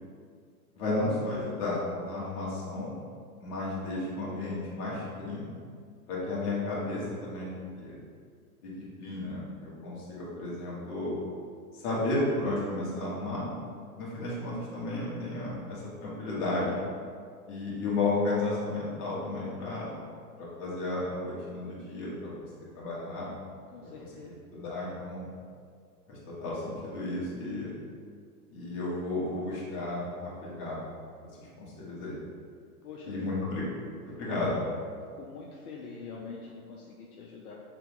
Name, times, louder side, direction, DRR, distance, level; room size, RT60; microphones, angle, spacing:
voice 1, 0.7-2.9 3.4-5.5 6.1-7.5 7.8-8.0 8.6-8.7 9.0-11.1 11.7-13.5 13.9-16.8 17.5-19.9 20.4-22.3 22.7-23.3 23.8-23.9 24.5-25.3 26.1-27.7 28.5-30.8 31.6-32.2 33.0-33.6 34.1-34.6, left 2 dB, 40° left, -7 dB, 1.4 m, -33 dB
voice 2, 23.7-24.4 32.8-33.1 34.3-34.4 35.1-37.5, left 4 dB, 75° left, -2 dB, 0.6 m, -44 dB
3.0 x 2.9 x 3.6 m, 2.1 s
hypercardioid pair, 115°, 46 cm